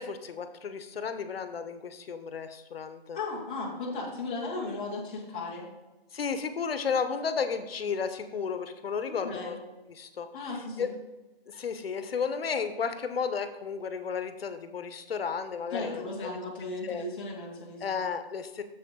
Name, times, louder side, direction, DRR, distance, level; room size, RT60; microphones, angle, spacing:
voice 1, 0.0-3.2 6.1-9.6 9.9-10.3 10.8-10.9 11.5-16.1 16.8-17.0 17.8-18.6, left 6 dB, 75° left, 10 dB, 0.9 m, -33 dB
voice 2, 3.1-5.7 9.1-9.6 10.3-10.9 15.7-18.0, left 3 dB, 10° left, -6 dB, 0.5 m, -36 dB
7.0 x 6.9 x 3.7 m, 1.1 s
hypercardioid pair, 170°, 30 cm